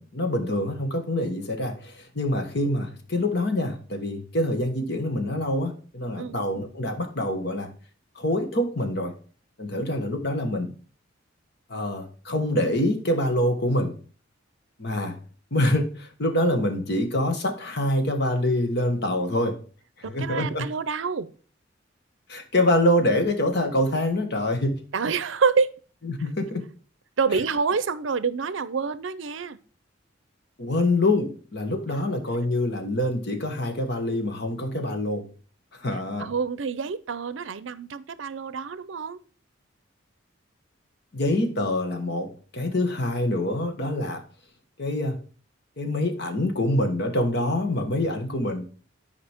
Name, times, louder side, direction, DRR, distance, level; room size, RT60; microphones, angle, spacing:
voice 1, 0.0-7.7 8.1-9.2 9.6-10.7 11.7-14.0 14.8-15.2 15.5-19.6 20.0-20.7 22.3-24.8 26.1-26.6 30.6-35.3 35.7-36.3 41.1-44.2 44.8-45.2 45.8-48.7, left 1 dB, 55° left, 1.4 m, -25 dB
voice 2, 20.0-21.3 24.9-25.7 27.2-29.6 31.9-32.0 36.2-39.2, right 5 dB, 70° right, 0.5 m, -27 dB
10.0 x 5.0 x 3.5 m
head